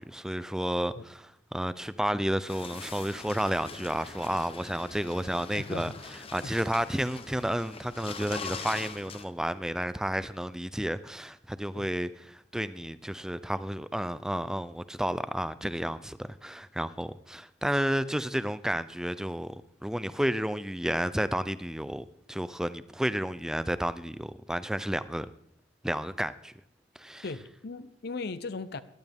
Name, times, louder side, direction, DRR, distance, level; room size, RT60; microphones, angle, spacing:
voice 1, 0.0-19.6 19.8-25.3 25.8-26.5 27.0-27.2, equal, 5° right, 0.4 m, -31 dB
sound 1, 2.5-9.2, left 5 dB, 30° left, 0.8 m, -43 dB
voice 2, 5.5-6.0 6.4-6.5 11.7-11.9 27.2-28.8, left 3 dB, 60° left, 0.6 m, -38 dB
17.0 x 11.5 x 3.5 m
head